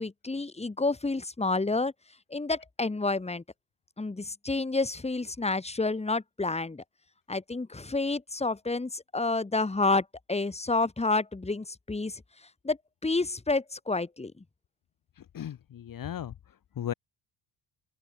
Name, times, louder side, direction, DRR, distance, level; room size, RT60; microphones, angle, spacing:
voice 1, 0.0-1.9 2.3-3.4 4.0-6.8 7.3-12.2 12.6-12.8 13.0-14.4, left 3 dB, 15° left, 5.4 m, -29 dB
voice 2, 15.3-16.3 16.8-16.9, left 10 dB, 45° left, 3.0 m, -35 dB
open air
cardioid pair, 135°, 45 cm